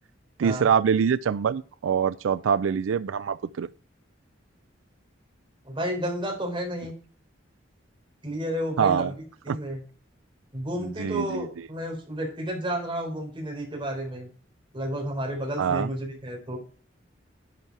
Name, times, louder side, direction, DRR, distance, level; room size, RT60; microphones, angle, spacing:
voice 1, 0.4-3.7 8.8-9.1 9.5-9.6 10.8-11.7 15.6-15.9, right 7 dB, 85° right, 0.4 m, -25 dB
voice 2, 5.7-6.9 8.2-9.1 9.4-9.8 10.5-14.3 14.7-16.6, equal, 25° right, 3.9 m, -31 dB
11.0 x 5.9 x 4.7 m
head